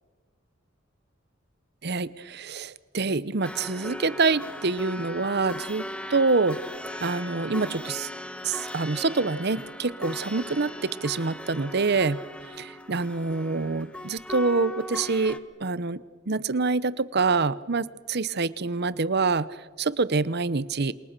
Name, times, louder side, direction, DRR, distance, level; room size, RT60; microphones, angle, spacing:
voice 1, 1.8-6.6 7.0-8.1 8.4-12.2 12.6-16.0 16.3-19.5 19.8-20.9, right 4 dB, 55° right, 17 dB, 0.9 m, -26 dB
sound 1, 3.4-15.4, left 1 dB, 5° left, 1.2 m, -38 dB
28.0 x 27.0 x 6.8 m, 1.3 s
head